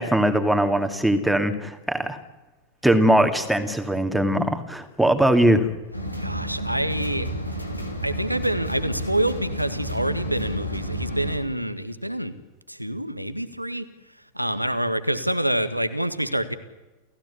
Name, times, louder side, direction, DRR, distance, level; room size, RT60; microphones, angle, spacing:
voice 1, 0.0-2.2 2.8-5.7, right 1 dB, 5° right, 6 dB, 2.4 m, -21 dB
sound 1, 5.9-11.4, right 1 dB, 85° left, 3.2 m, -31 dB
voice 2, 6.2-7.3 8.0-12.3 12.7-13.8 14.3-16.5, right 1 dB, 90° right, 11 dB, 1.7 m, -26 dB
29.5 x 16.0 x 8.5 m, 1.2 s
figure-of-eight pair, 90°, 0 cm